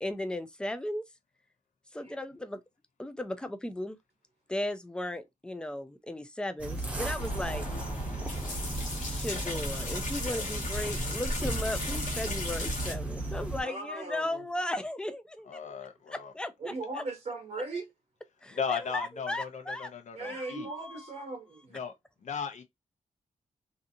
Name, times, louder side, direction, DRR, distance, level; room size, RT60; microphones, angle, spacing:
voice 1, 0.0-1.0 1.9-2.6 3.0-4.0 4.5-7.6 9.0-15.6 16.1-17.0 18.4-19.9 20.2-21.2, left 1 dB, 5° left, 0.3 m, -36 dB
sound 1, 6.6-13.6, right 2 dB, 10° right, 0.8 m, -35 dB
sound 2, 7.2-12.9, left 2 dB, 80° left, 1.1 m, -36 dB
voice 2, 13.6-14.5 16.6-17.9 20.1-21.8, right 2 dB, 50° right, 0.7 m, -38 dB
voice 3, 15.5-16.3 18.5-20.7 21.7-21.9 22.2-22.6, left 6 dB, 65° left, 0.6 m, -36 dB
2.6 x 2.5 x 2.6 m
wide cardioid pair, 170°, 13 cm